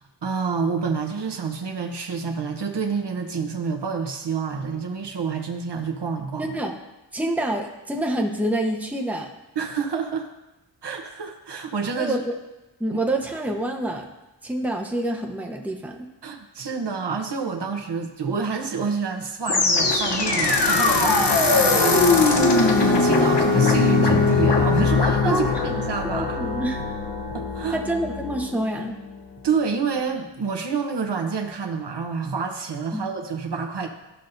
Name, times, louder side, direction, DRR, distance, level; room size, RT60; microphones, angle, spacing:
voice 1, 0.2-6.6 9.6-10.3 10.8-12.2 12.9-13.0 16.2-26.4 27.3-27.8 29.4-33.9, right 5 dB, 65° right, 3 dB, 1.0 m, -28 dB
voice 2, 6.4-6.8 7.1-9.3 12.0-12.2 12.8-14.1 14.4-16.1 25.2-25.5 26.1-26.9 27.7-29.0 32.9-33.1, right 1 dB, 5° right, 2 dB, 0.8 m, -27 dB
sound 1, 19.5-28.6, left 3 dB, 65° left, 1.0 m, -20 dB
13.5 x 5.6 x 2.6 m, 1.0 s
wide cardioid pair, 90°, 44 cm